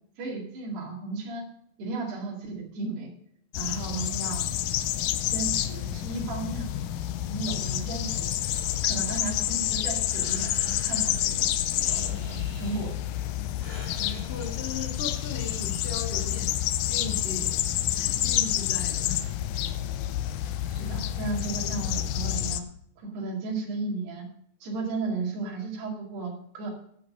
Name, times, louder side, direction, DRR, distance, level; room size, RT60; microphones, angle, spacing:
voice 1, 0.2-1.4 1.8-3.1 3.6-4.6 5.3-6.7 7.3-8.3 8.8-11.5 11.9-13.0 20.7-22.7 23.0-24.3 24.6-26.7, right 3 dB, 80° right, -2 dB, 4.5 m, -34 dB
sound 1, 3.5-22.6, left 12 dB, 85° left, 1.9 m, -29 dB
voice 2, 3.6-4.3 14.0-16.6 16.9-17.6 17.9-19.4, left 4 dB, 45° left, 1 dB, 0.7 m, -38 dB
Breathing, 8.4-15.6, left 1 dB, 20° left, 3.5 m, -49 dB
11.5 x 8.5 x 5.3 m, 0.67 s
omnidirectional pair, 4.6 m